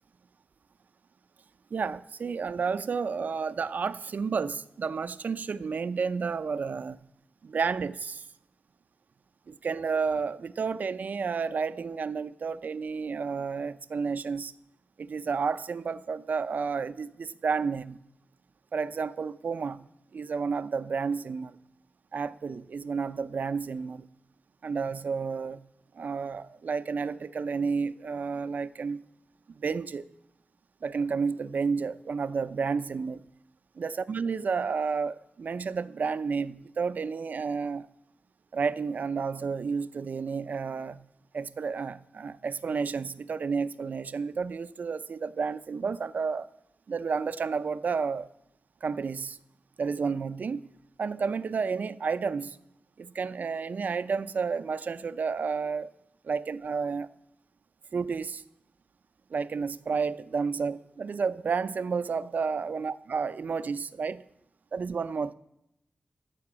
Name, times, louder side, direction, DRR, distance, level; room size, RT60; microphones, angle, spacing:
voice 1, 1.7-7.0 7.4-8.3 9.5-14.5 15.0-18.0 18.7-19.8 20.1-21.6 22.1-24.1 24.6-25.6 25.9-29.0 29.6-30.1 30.8-33.2 33.8-37.9 38.5-41.0 41.3-46.5 46.9-48.3 48.8-49.4 49.8-50.7 51.0-52.6 53.0-55.9 56.2-57.1 57.9-58.4 59.3-64.2 64.7-65.3, right 5 dB, 70° right, 0.5 m, -31 dB
14.5 x 7.8 x 6.1 m
wide cardioid pair, 90°, 3 cm